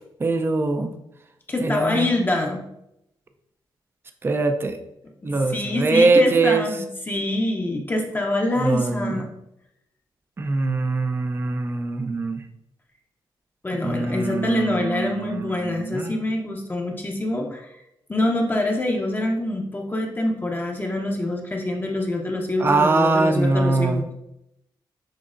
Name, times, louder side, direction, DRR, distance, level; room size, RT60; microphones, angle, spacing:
voice 1, 0.2-0.9 1.6-2.1 4.2-4.8 5.2-6.6 8.6-9.2 10.4-12.4 13.8-16.2 22.6-24.0, right 3 dB, 25° right, 7 dB, 0.4 m, -22 dB
voice 2, 1.5-2.6 5.5-9.3 13.6-17.7 18.1-24.2, left 1 dB, 20° left, 1 dB, 0.6 m, -25 dB
6.3 x 2.8 x 2.5 m, 0.82 s
cardioid pair, 80°, 9 cm